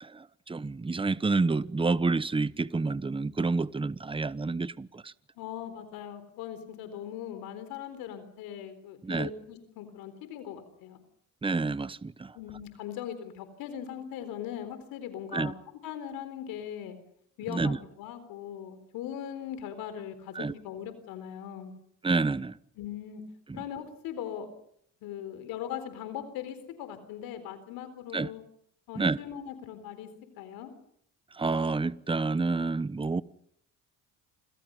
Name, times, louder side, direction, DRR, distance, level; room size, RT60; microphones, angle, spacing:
voice 1, 0.0-5.1 9.0-9.3 11.4-12.4 15.3-15.5 17.5-17.8 20.3-20.5 22.0-22.6 28.1-28.3 29.0-29.2 31.3-33.2, right 3 dB, 15° right, 1.0 m, -29 dB
voice 2, 5.4-11.0 12.3-15.5 15.8-17.0 17.4-21.7 22.8-23.2 23.5-24.5 25.0-28.4 28.9-30.1 30.4-30.7, left 10 dB, 80° left, 4.0 m, -40 dB
29.5 x 26.0 x 5.5 m
supercardioid pair, 75°, 34 cm